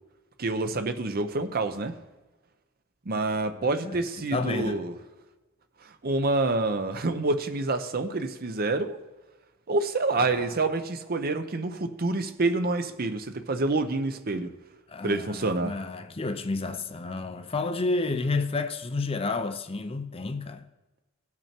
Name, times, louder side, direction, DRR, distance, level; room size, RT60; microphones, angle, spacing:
voice 1, 0.4-1.9 3.1-4.9 6.0-9.0 9.7-14.5 15.0-15.7, right 2 dB, 45° right, 0.7 m, -27 dB
voice 2, 4.3-4.8 10.2-10.5 14.9-20.6, left 3 dB, 25° left, 0.5 m, -30 dB
18.0 x 6.1 x 4.4 m
head